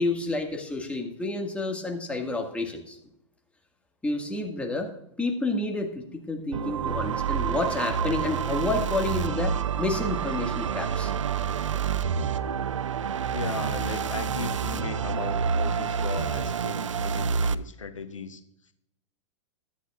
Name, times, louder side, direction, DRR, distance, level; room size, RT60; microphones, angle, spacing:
voice 1, 0.0-3.0 4.0-4.9 5.2-11.1, left 2 dB, 10° left, 2 dB, 1.8 m, -29 dB
sound 1, 6.5-17.5, right 7 dB, 80° right, 0.6 m, -28 dB
voice 2, 13.3-18.7, left 4 dB, 85° left, 10 dB, 1.0 m, -36 dB
16.0 x 11.5 x 2.4 m, 0.77 s
hypercardioid pair, 105°, 16 cm